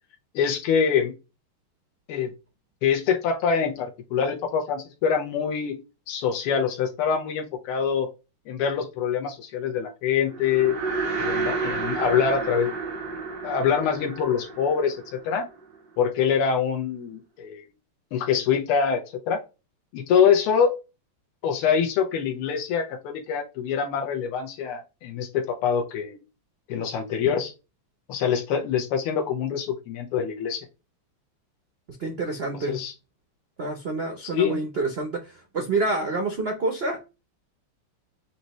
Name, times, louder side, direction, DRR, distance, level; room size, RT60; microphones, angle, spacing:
voice 1, 0.3-1.1 2.1-2.3 2.8-5.8 6.1-8.1 8.5-10.8 11.2-12.7 13.4-15.5 16.0-17.6 18.1-19.4 19.9-20.8 21.4-26.2 26.7-27.5 28.1-30.7 32.7-32.9 34.3-34.6, left 7 dB, 90° left, 1.7 m, -25 dB
sound 1, 10.3-15.7, right 4 dB, 60° right, 2.2 m, -31 dB
voice 2, 31.9-32.8 33.6-37.0, right 3 dB, 85° right, 0.5 m, -28 dB
6.5 x 2.7 x 3.0 m
omnidirectional pair, 2.4 m